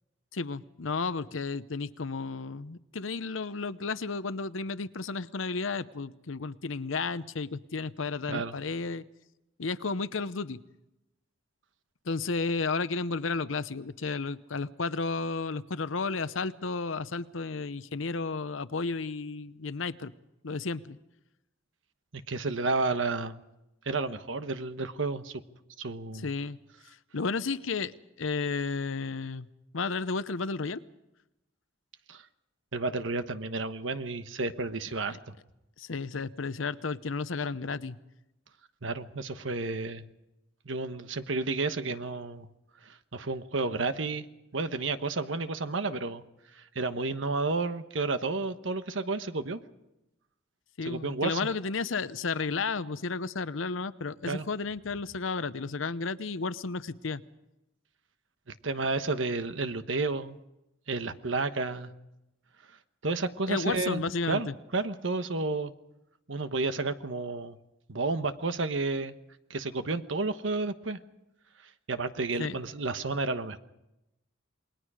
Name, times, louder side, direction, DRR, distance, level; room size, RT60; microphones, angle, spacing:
voice 1, 0.3-9.0 9.6-10.6 12.1-20.1 20.4-21.0 26.2-26.6 27.1-29.5 29.7-30.8 35.1-35.2 35.8-38.0 50.8-57.2 63.5-64.5 72.4-72.5, left 4 dB, 90° left, 14 dB, 0.8 m, -32 dB
voice 2, 22.1-23.4 23.8-25.4 25.8-26.3 32.1-32.2 32.7-35.3 38.8-40.1 40.6-42.5 42.8-44.3 44.5-46.2 46.5-49.6 50.8-51.5 54.3-54.5 58.6-60.4 60.9-61.9 63.0-64.0 64.3-65.7 66.3-67.6 67.9-69.1 69.5-71.0 71.9-73.6, right 3 dB, 70° right, 10 dB, 1.2 m, -31 dB
28.5 x 21.0 x 5.0 m, 0.91 s
head